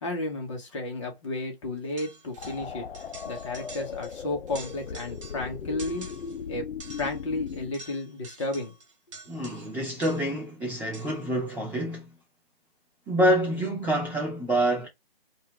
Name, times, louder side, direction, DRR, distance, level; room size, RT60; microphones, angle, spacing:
voice 1, 0.0-2.9 3.2-6.1 6.5-6.7 7.0-8.7, left 2 dB, 30° left, 1.3 m, -33 dB
sound 1, 2.0-2.7 2.9-4.2 4.5-5.5 5.8-6.4 6.8-10.4 10.9-11.3, right 2 dB, 30° right, 1.0 m, -47 dB
sound 2, 2.4-7.7, left 6 dB, 80° left, 0.6 m, -38 dB
voice 2, 9.3-12.1 13.1-14.9, right 1 dB, 5° right, 0.6 m, -26 dB
4.2 x 2.6 x 3.4 m
hypercardioid pair, 160°, 31 cm